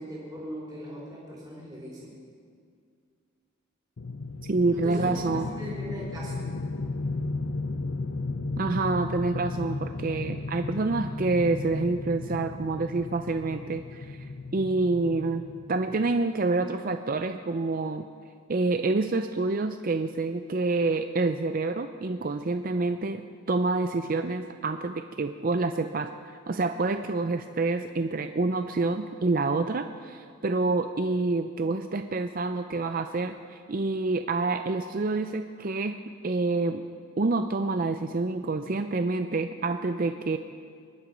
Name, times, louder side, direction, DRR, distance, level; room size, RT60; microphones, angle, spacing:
voice 1, 0.0-2.1 4.7-6.4, equal, 20° right, -5 dB, 3.6 m, -39 dB
sound 1, 4.0-16.2, left 3 dB, 70° left, 0.6 m, -35 dB
voice 2, 4.5-5.5 8.6-14.3 14.5-15.4 15.7-18.1 18.5-36.0 36.2-36.8 37.2-40.4, right 3 dB, 45° right, 8 dB, 0.5 m, -27 dB
24.5 x 11.5 x 5.2 m, 2.2 s
head